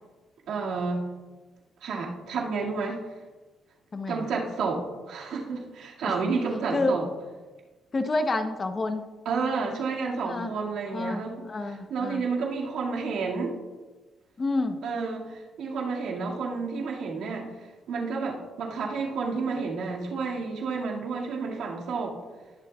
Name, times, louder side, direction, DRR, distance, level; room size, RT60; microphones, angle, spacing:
voice 1, 0.5-1.1 1.8-3.0 4.1-7.1 9.3-13.6 14.8-17.5 17.9-22.2, right 4 dB, 80° right, -2 dB, 2.1 m, -30 dB
voice 2, 3.9-4.3 6.0-6.2 6.7-7.0 7.9-9.0 10.3-10.5 10.9-11.2 11.5-12.3 14.4-14.8, left 2 dB, 30° left, 7 dB, 0.8 m, -28 dB
20.0 x 7.2 x 2.4 m, 1.3 s
cardioid pair, 90°, 0 cm